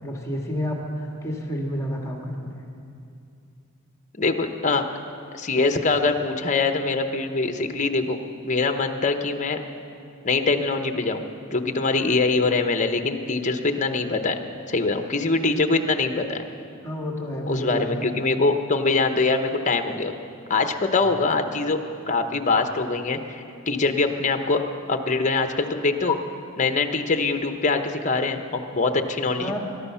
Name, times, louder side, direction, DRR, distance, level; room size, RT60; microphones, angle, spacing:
voice 1, 0.0-0.9 1.2-2.6 16.8-18.1 29.4-29.6, equal, 15° left, 0 dB, 1.7 m, -30 dB
voice 2, 4.2-4.8 5.3-8.2 8.4-9.6 10.2-14.4 14.7-16.4 17.5-20.1 20.5-21.8 22.1-24.6 24.9-26.2 26.6-29.6, left 3 dB, 35° left, 6 dB, 0.9 m, -23 dB
21.5 x 12.0 x 5.7 m, 2.5 s
head